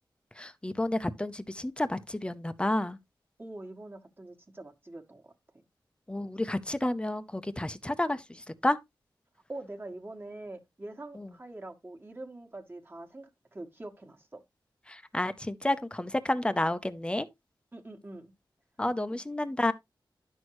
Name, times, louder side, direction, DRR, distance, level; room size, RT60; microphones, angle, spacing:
voice 1, 0.3-3.0 6.1-8.8 11.1-11.3 14.9-17.3 18.8-19.7, left 1 dB, 10° left, 0.7 m, -30 dB
voice 2, 3.4-5.6 9.5-14.4 17.7-18.3, right 2 dB, 25° right, 1.5 m, -44 dB
11.0 x 6.3 x 3.1 m
wide cardioid pair, 95°, 8 cm